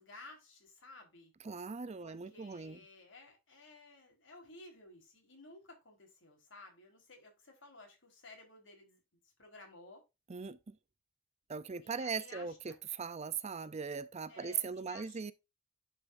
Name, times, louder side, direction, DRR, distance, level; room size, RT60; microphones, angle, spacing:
voice 1, 0.0-1.3 2.0-10.0 11.8-12.8 14.3-15.2, left 2 dB, 70° left, 4.2 m, -56 dB
voice 2, 1.4-2.8 10.3-10.8 11.5-15.3, right 6 dB, 35° right, 0.5 m, -39 dB
10.5 x 5.5 x 2.6 m
head